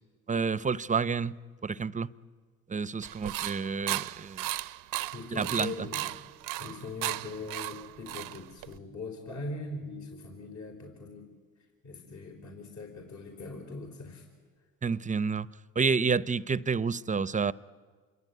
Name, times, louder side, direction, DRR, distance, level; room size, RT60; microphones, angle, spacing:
voice 1, 0.3-1.4 1.6-2.1 2.7-4.5 5.3-5.9 14.8-15.5 15.7-17.5, right 5 dB, 25° right, 18 dB, 0.7 m, -29 dB
sound 1, 3.0-8.8, right 17 dB, 80° right, 0.8 m, -36 dB
voice 2, 5.1-6.0 6.6-11.3 11.8-14.3, left 3 dB, 55° left, 2 dB, 4.6 m, -41 dB
27.5 x 22.5 x 9.4 m, 1.5 s
cardioid pair, 85°, 33 cm